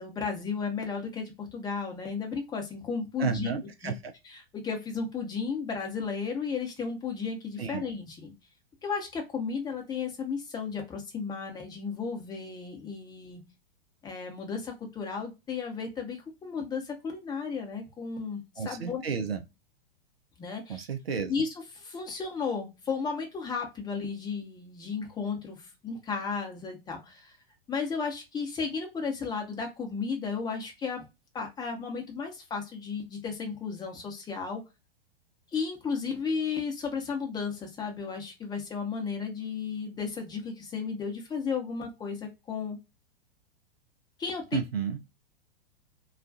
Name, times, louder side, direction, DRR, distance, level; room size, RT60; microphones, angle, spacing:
voice 1, 0.0-3.5 3.8-3.9 4.2-8.3 8.8-13.4 14.0-19.0 20.4-20.9 21.3-27.3 27.7-31.0 31.3-34.6 35.5-42.8 44.2-44.6, left 5 dB, 15° left, 0.7 m, -34 dB
voice 2, 3.2-3.9 7.6-7.8 18.6-19.4 20.7-21.3 44.5-45.0, right 6 dB, 80° right, 0.5 m, -31 dB
2.3 x 2.2 x 2.5 m
figure-of-eight pair, 100°, 30 cm